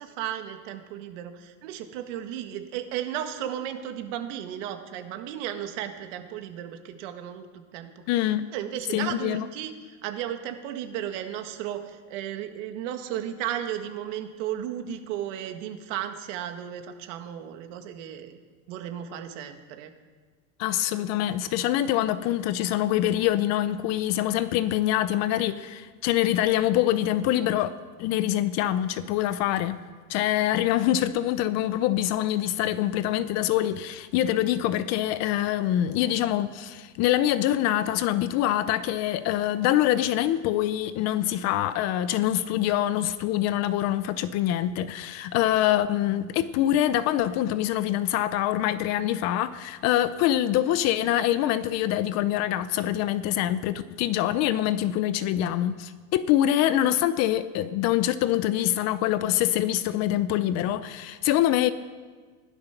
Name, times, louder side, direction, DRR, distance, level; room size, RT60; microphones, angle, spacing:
voice 1, 0.0-7.9 8.5-9.7 10.0-18.4 18.7-19.9, right 10 dB, 65° right, 1.8 m, -34 dB
voice 2, 8.1-8.4 8.9-9.5 20.6-29.8 30.1-61.7, left 12 dB, 40° left, 0.6 m, -25 dB
15.5 x 12.0 x 5.9 m
supercardioid pair, 155°, 40 cm